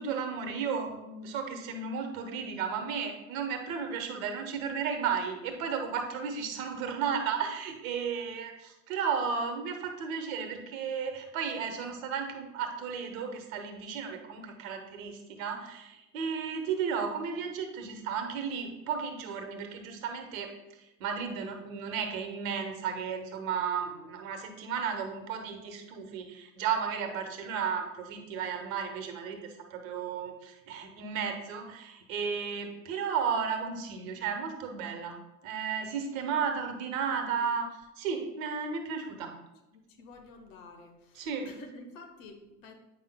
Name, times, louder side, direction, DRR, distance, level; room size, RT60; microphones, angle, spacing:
voice 1, 0.0-20.5 21.0-35.2 35.4-37.7 38.0-39.3 41.1-41.5, right 6 dB, 55° right, 5 dB, 1.2 m, -34 dB
voice 2, 39.7-42.7, left 3 dB, 50° left, 5 dB, 1.1 m, -50 dB
8.6 x 5.5 x 2.2 m, 1.0 s
hypercardioid pair, 90°, 50 cm